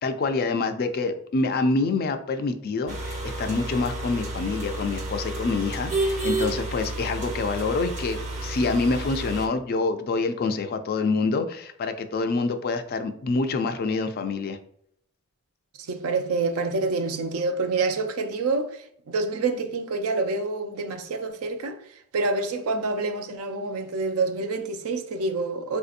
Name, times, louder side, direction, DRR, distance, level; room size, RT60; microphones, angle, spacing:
voice 1, 0.0-14.6, left 3 dB, 45° left, 0.3 m, -26 dB
sound 1, 2.9-9.5, right 2 dB, 30° right, 0.6 m, -31 dB
voice 2, 15.8-25.8, right 3 dB, 70° right, 0.4 m, -27 dB
3.9 x 2.6 x 2.5 m
head